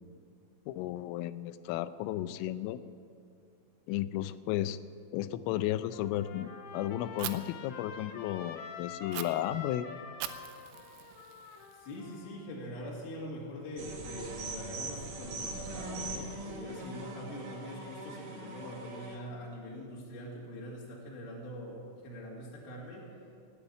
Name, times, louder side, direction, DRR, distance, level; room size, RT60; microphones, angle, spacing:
voice 1, 0.7-2.8 3.9-4.8 5.1-9.9, left 13 dB, 90° left, 14 dB, 3.1 m, -34 dB
Trumpet, 5.9-12.6, left 5 dB, 75° left, 2.4 m, -46 dB
Fire, 7.2-7.3 9.1-9.2 10.2-12.2, right 15 dB, 85° right, 3.1 m, -41 dB
voice 2, 11.8-23.1, equal, 55° left, -4 dB, 3.9 m, -43 dB
sound 1, 13.8-19.2, right 2 dB, 55° right, 2.7 m, -41 dB
17.5 x 8.6 x 8.9 m, 2.5 s
omnidirectional pair, 5.6 m